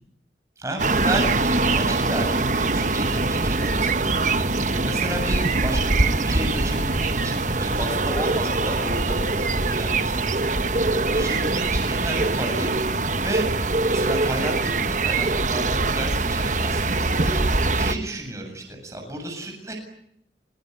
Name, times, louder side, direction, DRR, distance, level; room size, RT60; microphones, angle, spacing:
voice 1, 0.6-4.0 4.6-10.6 11.1-12.7 13.2-13.5 13.9-17.4 17.7-19.7, right 1 dB, 15° right, 2 dB, 7.7 m, -32 dB
sound 1, 0.8-18.0, right 3 dB, 45° right, 1.3 m, -23 dB
25.5 x 23.0 x 9.6 m, 0.72 s
head